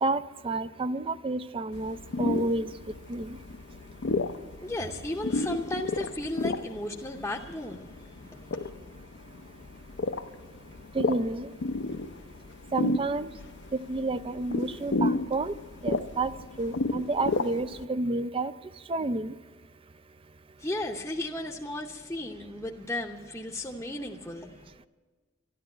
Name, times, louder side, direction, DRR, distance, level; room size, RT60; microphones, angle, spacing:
voice 1, 0.0-2.7 3.1-3.4 10.9-11.5 12.7-13.3 13.9-15.5 15.8-16.3 16.6-18.5 18.9-19.3, right 2 dB, 25° right, 0.4 m, -30 dB
sound 1, 1.7-17.8, left 3 dB, 55° left, 0.6 m, -33 dB
voice 2, 4.6-8.7 20.6-24.7, left 1 dB, 10° left, 0.8 m, -35 dB
13.0 x 12.0 x 9.0 m
head